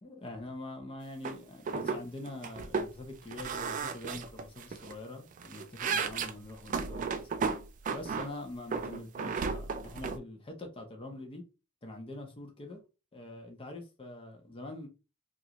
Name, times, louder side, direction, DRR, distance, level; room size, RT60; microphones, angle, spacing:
voice 1, 0.0-7.3 7.9-11.4 11.8-12.8 13.1-14.9, left 2 dB, 25° left, 0.7 m, -44 dB
sound 1, 1.2-1.4 1.7-2.0 2.3-2.9 3.3-4.9 5.3-8.3 8.7-10.2, right 5 dB, 40° right, 0.3 m, -34 dB
3.0 x 2.5 x 2.9 m
head